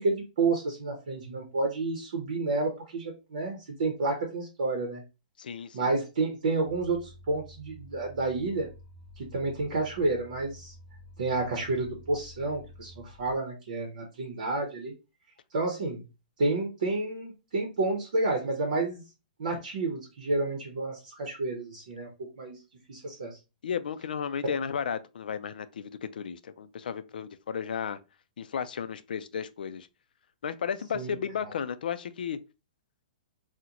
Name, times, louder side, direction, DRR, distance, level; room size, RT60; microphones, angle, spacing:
voice 1, 0.0-5.0 5.7-8.7 9.2-10.7 11.2-14.9 15.5-16.0 16.4-19.0 19.4-22.1 22.4-22.6 22.9-23.4 30.9-31.5, right 3 dB, 55° right, 0.7 m, -30 dB
voice 2, 5.4-5.9 23.6-28.0 28.4-29.9 30.4-32.4, left 7 dB, 80° left, 0.3 m, -34 dB
sound 1, 6.7-13.3, left 1 dB, 15° right, 0.4 m, -51 dB
3.8 x 2.1 x 2.8 m
hypercardioid pair, 180°, 5 cm